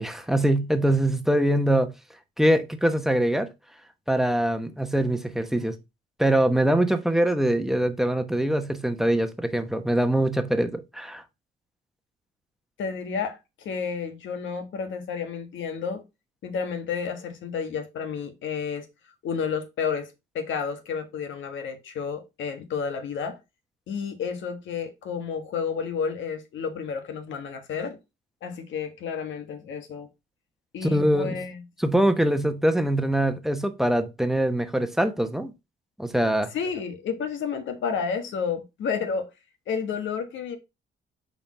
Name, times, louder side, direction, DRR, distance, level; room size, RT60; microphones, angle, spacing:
voice 1, 0.0-1.9 2.4-3.5 4.1-5.8 6.2-11.2 30.8-31.4 31.8-35.5 36.0-36.5, right 1 dB, ahead, 1.1 m, -23 dB
voice 2, 12.8-16.0 16.4-18.8 19.2-23.4 23.9-28.0 28.4-30.1 30.7-31.6 36.5-39.2 39.7-40.6, left 6 dB, 75° left, 1.5 m, -31 dB
5.7 x 4.2 x 4.2 m
cardioid pair, 90°, 20 cm